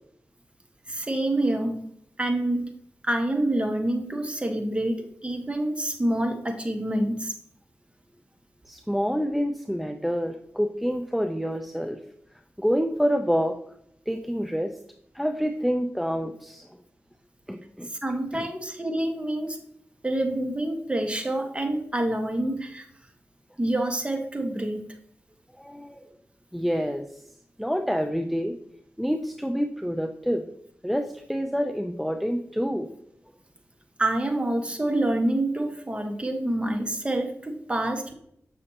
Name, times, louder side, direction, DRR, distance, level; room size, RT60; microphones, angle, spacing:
voice 1, 0.9-1.8 2.2-2.7 3.0-7.3 17.9-19.6 20.0-22.9 23.6-24.8 34.0-38.1, right 1 dB, 20° right, 4 dB, 1.5 m, -27 dB
voice 2, 8.7-12.0 12.6-13.6 14.1-14.8 15.1-16.8 17.5-17.9 18.3-18.5 25.5-26.0 26.5-27.2 27.6-28.6 29.0-30.4 30.8-32.9, equal, ahead, 6 dB, 0.5 m, -27 dB
7.7 x 6.3 x 2.9 m, 0.70 s
cardioid pair, 50°, 5 cm